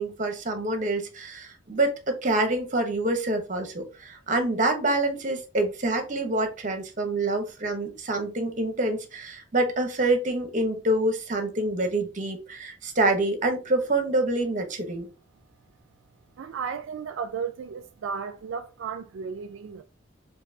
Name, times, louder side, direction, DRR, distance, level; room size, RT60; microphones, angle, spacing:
voice 1, 0.0-15.1, right 2 dB, 40° right, 0.9 m, -26 dB
voice 2, 16.4-19.8, right 6 dB, 85° right, 0.3 m, -34 dB
4.5 x 2.6 x 2.7 m
head